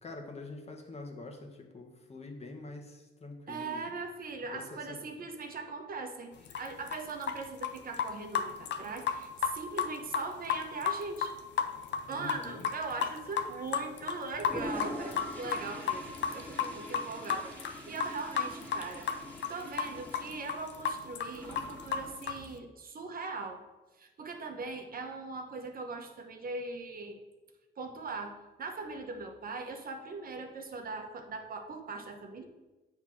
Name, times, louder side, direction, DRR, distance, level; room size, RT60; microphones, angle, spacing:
voice 1, 0.0-3.9 4.5-5.3 12.1-12.7, left 3 dB, 30° left, 2 dB, 1.4 m, -45 dB
voice 2, 3.5-11.3 12.1-19.1 19.5-23.6 24.0-27.2 27.8-32.4, right 3 dB, 45° right, 4 dB, 1.0 m, -40 dB
sound 1, 6.5-7.4 7.6-13.1 13.4-13.5 13.7-19.5 19.8-22.6, left 8 dB, 65° left, 0.7 m, -32 dB
Toilet flush, 14.3-22.2, equal, 10° left, 2.2 m, -44 dB
8.2 x 3.5 x 6.1 m, 1.1 s
cardioid pair, 90°, 20 cm